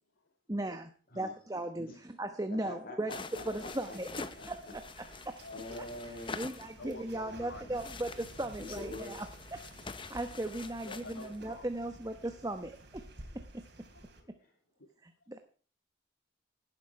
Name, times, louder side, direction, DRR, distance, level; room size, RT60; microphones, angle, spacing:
voice 1, 0.5-1.9 2.2-3.1 3.4-4.1 4.5-4.6 6.3-9.3 9.8-13.0 13.5-13.6 15.3-15.4, right 1 dB, 20° right, 1.0 m, -37 dB
voice 2, 2.6-4.7 5.0-6.5 8.6-9.2, left 1 dB, 50° left, 5.1 m, -45 dB
sound 1, 3.1-7.1 7.7-11.4, left 4 dB, 25° left, 0.8 m, -46 dB
sound 2, 3.3-14.2, right 1 dB, 60° right, 3.7 m, -52 dB
voice 3, 5.4-5.9 6.4-7.9 10.6-11.7 13.8-14.4 14.7-15.3, left 2 dB, 85° left, 2.3 m, -50 dB
17.5 x 10.0 x 4.7 m
head